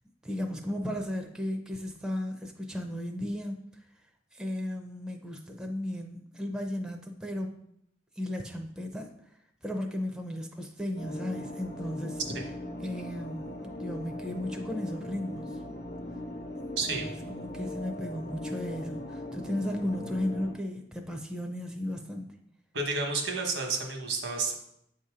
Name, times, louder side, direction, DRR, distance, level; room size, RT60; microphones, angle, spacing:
voice 1, 0.2-3.6 4.3-7.5 8.2-9.1 9.6-12.2 12.8-15.6 16.9-22.3, left 1 dB, 5° right, 2 dB, 0.5 m, -35 dB
sound 1, 11.0-20.5, left 1 dB, 60° left, 1.0 m, -39 dB
voice 2, 16.8-17.1 22.7-24.5, right 3 dB, 80° right, 2 dB, 1.1 m, -31 dB
7.9 x 2.8 x 4.9 m, 0.75 s
head